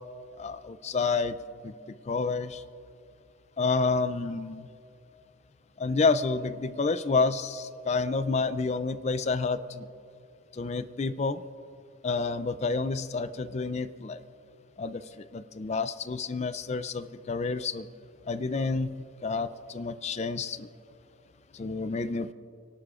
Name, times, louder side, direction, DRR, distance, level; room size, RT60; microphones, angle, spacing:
voice 1, 0.4-1.4 1.6-1.7 2.1-2.6 3.6-4.7 5.8-9.9 10.6-11.4 12.0-14.2 14.8-17.9 18.3-18.9 19.2-20.7 21.5-22.3, left 4 dB, 30° left, 13 dB, 0.4 m, -29 dB
29.5 x 11.5 x 2.4 m, 2.5 s
head